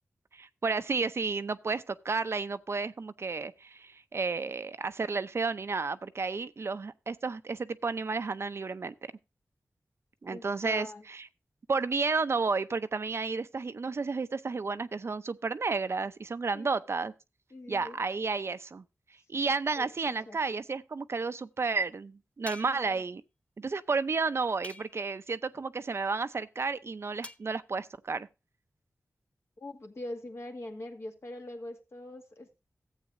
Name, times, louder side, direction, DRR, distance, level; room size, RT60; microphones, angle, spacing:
voice 1, 0.3-8.9 10.2-11.3 11.7-17.1 17.7-18.8 19.3-23.2 23.6-28.3, right 4 dB, 55° right, 0.6 m, -32 dB
voice 2, 10.3-11.0 16.5-16.8 17.5-18.0 19.8-20.4 22.7-23.0 29.6-32.6, left 1 dB, 60° left, 2.1 m, -43 dB
sound 1, 22.5-23.0 24.6-25.2 27.2-27.5, left 2 dB, 25° left, 0.6 m, -46 dB
14.5 x 8.3 x 2.6 m
wide cardioid pair, 80°, 5 cm